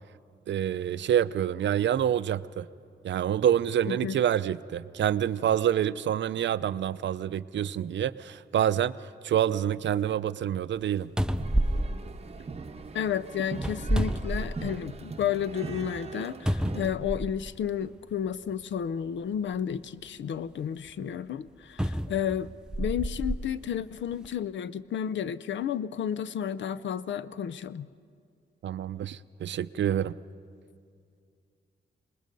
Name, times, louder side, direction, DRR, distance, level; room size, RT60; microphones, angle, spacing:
voice 1, 0.5-2.7 3.0-11.1 28.6-30.2, right 10 dB, 80° right, 15 dB, 0.5 m, -27 dB
voice 2, 3.9-4.2 12.9-22.5 22.8-27.9, left 9 dB, 80° left, 16 dB, 0.6 m, -32 dB
sound 1, 10.8-10.9 11.2-12.9 13.5-15.0 15.4-15.5 16.5-17.6 18.5-18.6 21.8-23.4 24.1-24.3, right 1 dB, 5° right, 0.4 m, -29 dB
sound 2, 11.4-16.9, right 4 dB, 35° right, 0.8 m, -40 dB
26.5 x 20.5 x 5.3 m, 2.3 s
wide cardioid pair, 135°, 19 cm